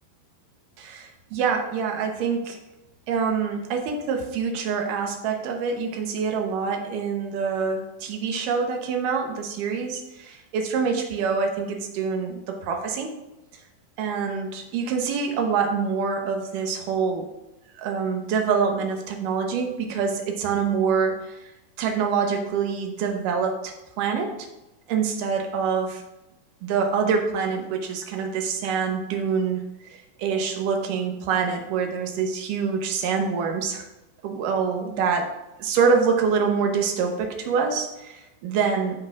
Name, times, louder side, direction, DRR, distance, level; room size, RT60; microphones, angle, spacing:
voice 1, 0.8-2.6 3.1-13.2 14.0-17.3 17.7-21.5 21.8-24.3 24.9-26.0 26.6-33.9 34.2-35.3 35.6-39.0, right 5 dB, 75° right, 3 dB, 2.1 m, -25 dB
14.0 x 5.5 x 2.4 m, 0.95 s
omnidirectional pair, 4.6 m